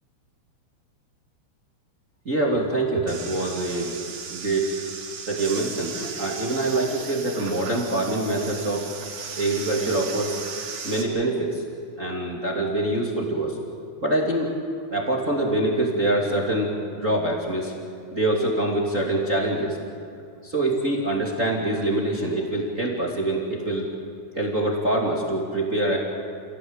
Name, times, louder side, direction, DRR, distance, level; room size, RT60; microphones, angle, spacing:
voice 1, 2.2-4.0 4.3-4.6 5.3-8.9 9.4-10.4 10.8-11.6 12.0-13.6 14.0-14.5 14.9-17.7 18.1-19.8 20.4-23.9 24.3-26.0, right 2 dB, 25° right, -1 dB, 1.7 m, -25 dB
sound 1, 3.1-11.0, right 5 dB, 60° right, 5.0 m, -36 dB
29.5 x 17.0 x 8.9 m, 2.6 s
omnidirectional pair, 5.8 m